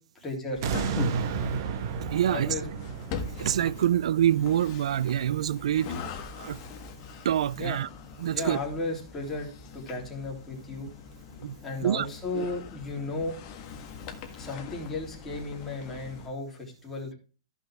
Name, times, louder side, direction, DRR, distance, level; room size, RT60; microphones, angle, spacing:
voice 1, 0.2-0.6 1.3-1.5 2.3-2.7 7.6-7.8 8.3-10.9 11.6-13.3 14.4-17.1, left 2 dB, 10° left, 3.6 m, -35 dB
sound 1, 0.5-16.3, left 5 dB, 35° left, 1.6 m, -42 dB
sound 2, 0.6-5.7 6.2-6.3, right 6 dB, 45° right, 1.3 m, -33 dB
voice 2, 2.0-2.5 3.4-5.9 6.4-6.6 7.2-7.9 8.2-8.6 11.4-11.5 11.8-12.1 12.3-12.5, right 10 dB, 75° right, 0.4 m, -26 dB
15.0 x 5.9 x 3.6 m
hypercardioid pair, 165°, 3 cm